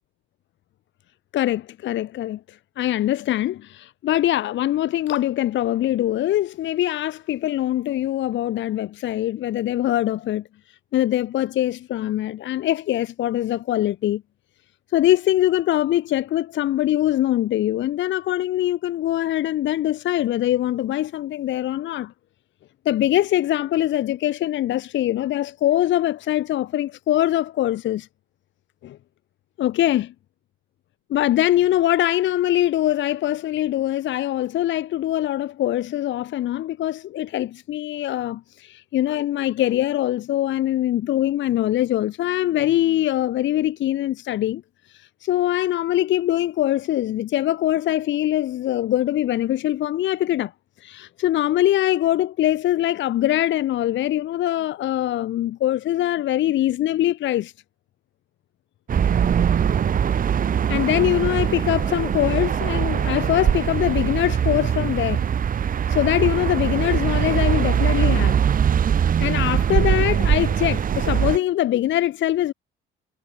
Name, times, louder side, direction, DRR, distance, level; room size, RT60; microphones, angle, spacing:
voice 1, 1.3-14.2 14.9-22.1 22.8-28.1 28.8-29.0 29.6-30.1 31.1-44.6 44.9-50.5 50.8-57.5 60.7-65.2 65.9-68.4 69.2-72.5, left 13 dB, 70° left, 0.7 m, -23 dB
sound 1, 58.9-71.4, right 8 dB, 45° right, 0.8 m, -21 dB
cardioid pair, 90°, 20 cm